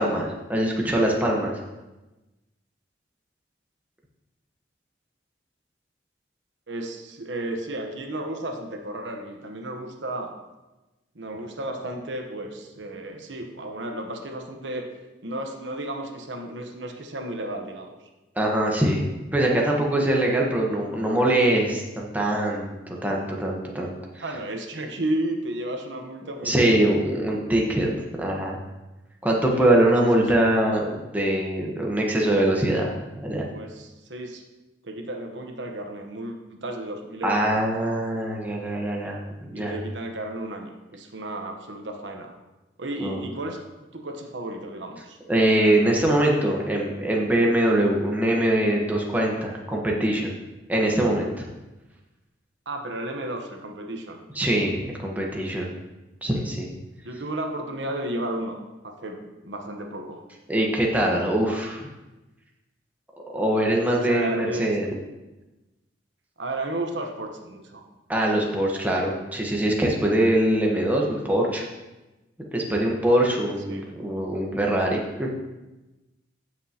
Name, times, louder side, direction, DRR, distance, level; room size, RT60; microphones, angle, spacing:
voice 1, 0.0-1.5 18.4-19.0 19.3-24.2 26.4-27.9 28.2-28.6 29.2-30.9 31.1-33.5 37.2-39.2 39.5-39.8 43.0-43.2 45.3-50.3 50.7-51.5 54.3-55.7 56.2-56.6 60.5-61.8 63.3-64.9 68.1-71.6 72.5-75.3, right 1 dB, 10° right, -2 dB, 1.1 m, -23 dB
voice 2, 6.7-10.4 11.1-14.9 15.2-18.0 24.2-26.8 29.5-29.7 30.4-30.5 33.5-34.4 34.8-37.9 39.5-42.3 42.8-43.6 43.9-45.2 52.7-54.2 56.2-56.4 57.0-60.2 63.9-64.9 66.4-67.8 73.7-73.9, right 1 dB, 80° right, 3 dB, 1.1 m, -33 dB
15.0 x 6.1 x 2.9 m, 1.1 s
head